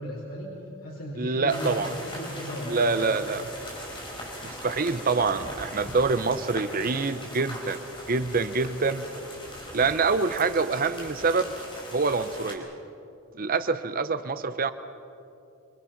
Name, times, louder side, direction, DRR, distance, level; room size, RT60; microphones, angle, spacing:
voice 1, 0.0-3.0, equal, 85° left, -5 dB, 4.8 m, -36 dB
voice 2, 1.2-1.9 2.7-3.5 4.4-7.8 8.1-9.0 9.7-11.5 11.9-12.7 13.3-14.7, right 4 dB, 40° right, 11 dB, 0.7 m, -26 dB
sound 1, 1.5-12.5, equal, 25° left, 4.5 m, -40 dB
26.0 x 25.5 x 5.9 m, 2.7 s
head